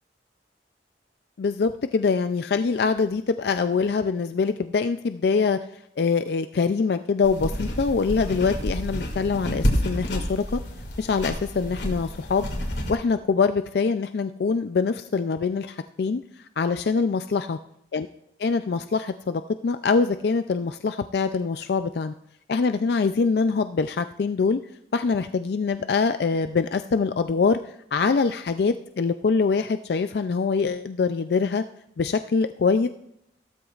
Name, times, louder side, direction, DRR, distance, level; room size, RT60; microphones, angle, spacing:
voice 1, 1.4-5.6 6.0-10.6 11.0-12.5 12.9-16.2 16.6-17.6 17.9-18.1 18.4-22.1 22.5-24.6 24.9-27.6 27.9-31.6 32.0-32.9, left 4 dB, 65° left, 10 dB, 0.4 m, -24 dB
sound 1, 7.2-12.9, equal, 90° left, 2.3 m, -29 dB
15.5 x 13.0 x 2.4 m, 0.77 s
head